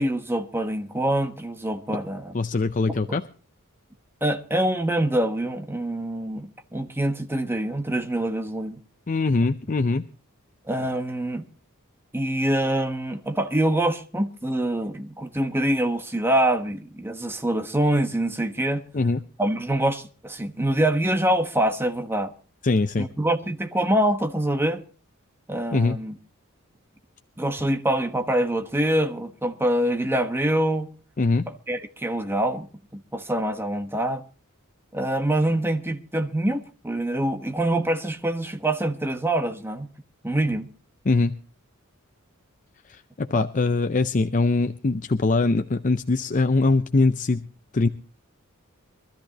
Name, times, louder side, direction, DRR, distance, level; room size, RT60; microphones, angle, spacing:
voice 1, 0.0-2.3 4.2-8.8 10.7-11.5 12.1-18.8 19.4-22.3 23.0-24.8 25.5-26.1 27.4-30.9 31.5-32.7 32.9-34.2 34.9-39.9 40.2-40.7 43.3-43.5, right 1 dB, 10° right, 1.2 m, -25 dB
voice 2, 2.3-3.2 9.1-10.1 18.9-19.2 22.6-23.1 25.7-26.0 31.2-31.4 41.1-41.4 42.9-47.4 47.7-47.9, left 3 dB, 35° left, 0.6 m, -22 dB
24.0 x 13.5 x 2.9 m
head